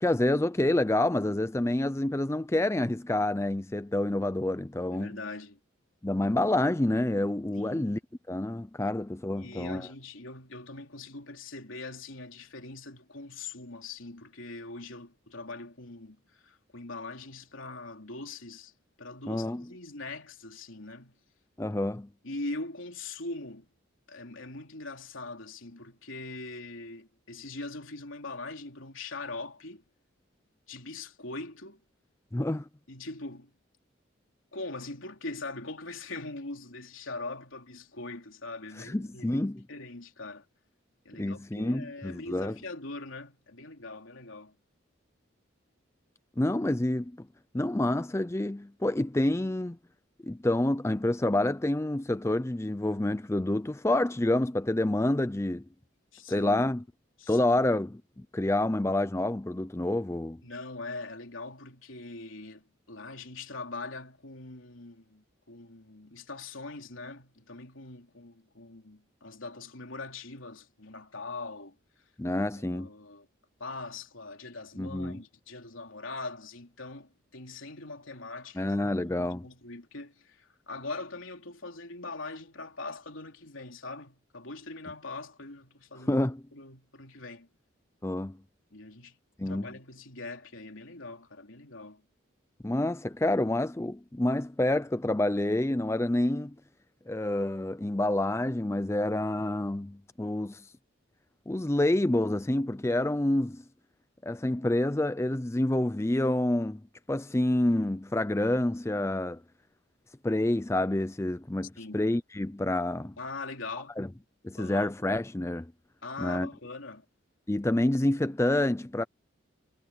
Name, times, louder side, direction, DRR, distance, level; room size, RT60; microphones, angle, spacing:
voice 1, 0.0-5.2 6.0-8.0 8.3-9.9 19.3-19.6 21.6-22.1 32.3-32.6 38.9-39.6 41.2-42.6 46.4-47.1 47.5-49.8 50.2-55.6 56.3-56.8 57.3-60.4 72.2-72.9 74.8-75.2 78.6-79.5 86.1-86.4 88.0-88.4 89.4-89.7 92.6-96.5 97.1-100.6 101.5-103.6 104.2-106.8 107.1-109.4 110.2-113.1 114.0-114.1 114.4-115.7 116.2-116.5 117.5-119.0, left 1 dB, 15° left, 0.4 m, -28 dB
voice 2, 4.9-5.6 7.5-7.9 9.3-18.7 19.0-21.2 22.2-23.7 24.1-29.8 30.7-31.8 32.9-33.5 34.5-40.4 41.0-44.5 56.1-56.7 57.2-57.6 60.4-71.7 72.3-73.3 73.6-87.5 88.7-89.2 89.5-92.0 111.8-112.1 113.2-114.0 114.6-114.9 116.0-117.0, left 3 dB, 80° left, 3.5 m, -42 dB
head